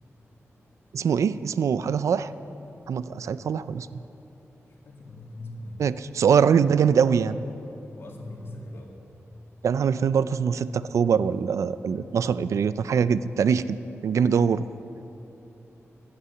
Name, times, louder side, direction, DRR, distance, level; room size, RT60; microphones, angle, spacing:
voice 1, 0.9-2.3 2.9-4.0 5.8-7.4 9.6-13.8 14.0-14.6, right 7 dB, 85° right, 15 dB, 0.4 m, -23 dB
voice 2, 4.7-5.9 7.9-9.0, left 1 dB, 50° left, -1 dB, 2.2 m, -41 dB
15.0 x 11.5 x 7.2 m, 3.0 s
wide cardioid pair, 175°, 5 cm